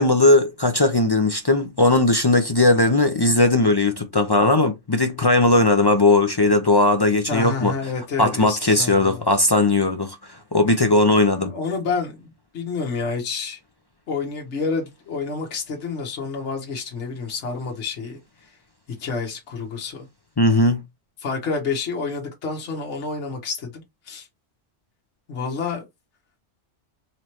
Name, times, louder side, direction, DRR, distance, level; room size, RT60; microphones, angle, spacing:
voice 1, 0.0-7.7 8.2-11.5 20.4-20.8, left 2 dB, 40° left, 0.3 m, -18 dB
voice 2, 7.3-9.2 11.4-13.6 14.1-18.6 19.0-20.1 21.2-24.3 25.3-25.8, left 4 dB, 75° left, 1.3 m, -29 dB
4.1 x 3.1 x 2.9 m
omnidirectional pair, 1.2 m